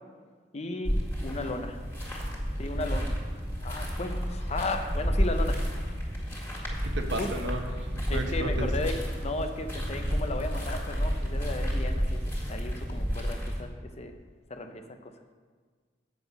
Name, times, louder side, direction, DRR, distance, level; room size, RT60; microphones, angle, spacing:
voice 1, 0.5-1.0 1.2-1.8 2.6-3.1 3.6-5.6 7.1-7.3 8.1-13.7 14.0-14.1 14.5-15.1, left 2 dB, 40° left, 6 dB, 0.7 m, -35 dB
sound 1, 0.8-13.6, equal, 10° left, 2.1 m, -31 dB
voice 2, 6.9-8.7, right 1 dB, 80° right, 4 dB, 1.1 m, -34 dB
8.0 x 7.6 x 5.4 m, 1.5 s
head